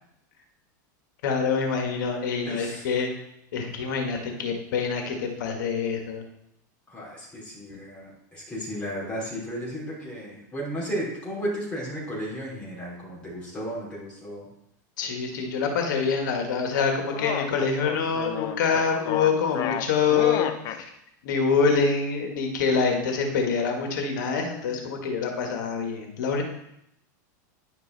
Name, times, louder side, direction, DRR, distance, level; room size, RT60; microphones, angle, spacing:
voice 1, 1.2-3.1 3.5-6.2 15.0-20.5 20.8-20.9 21.2-26.4, left 5 dB, 80° left, 3 dB, 1.6 m, -25 dB
voice 2, 2.4-2.9 6.9-14.5, equal, 10° left, -6 dB, 3.6 m, -34 dB
sound 1, 16.7-20.8, left 10 dB, 40° left, 0.6 m, -32 dB
10.0 x 5.4 x 4.0 m, 0.81 s
supercardioid pair, 140°, 10 cm